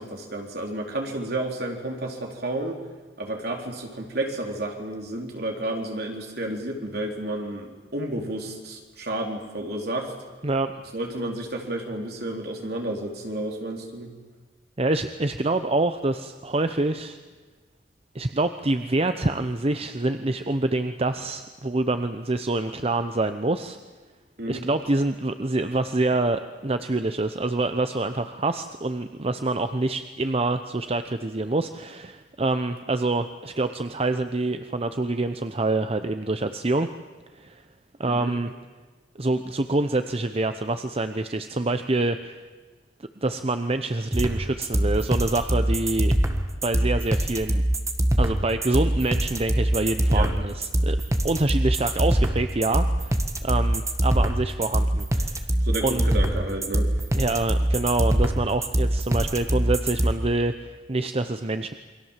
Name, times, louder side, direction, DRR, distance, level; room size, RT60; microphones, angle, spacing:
voice 1, 0.0-2.8 3.2-10.1 10.9-14.1 24.4-24.7 38.1-38.3 50.1-50.3 55.6-56.9, right 1 dB, 60° right, 2 dB, 4.2 m, -31 dB
voice 2, 10.4-10.8 14.8-17.2 18.1-23.8 24.5-36.9 37.3-37.6 38.0-38.5 39.2-42.4 43.2-46.1 46.6-47.6 48.2-51.0 51.2-55.5 55.8-56.1 57.1-61.7, right 2 dB, 35° right, 9 dB, 0.9 m, -26 dB
sound 1, 44.1-60.1, right 1 dB, 20° right, 1.6 m, -23 dB
28.5 x 23.5 x 7.5 m, 1.4 s
head